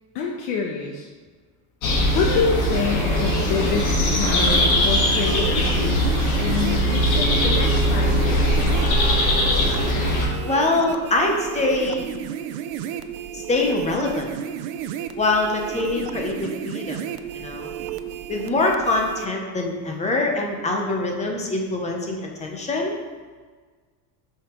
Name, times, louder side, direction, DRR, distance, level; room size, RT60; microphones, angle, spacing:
voice 1, 0.1-1.1 2.1-8.7, left 5 dB, 75° left, -1 dB, 1.1 m, -27 dB
sound 1, 1.8-10.3, left 1 dB, 40° left, 1.5 m, -20 dB
sound 2, 2.6-19.3, right 10 dB, 70° right, 0.6 m, -32 dB
voice 2, 10.4-12.1 13.3-14.3 15.2-17.0 17.3-17.7 18.3-22.9, left 2 dB, 15° left, 1 dB, 0.7 m, -24 dB
8.1 x 5.7 x 3.0 m, 1.5 s
cardioid pair, 155°, 47 cm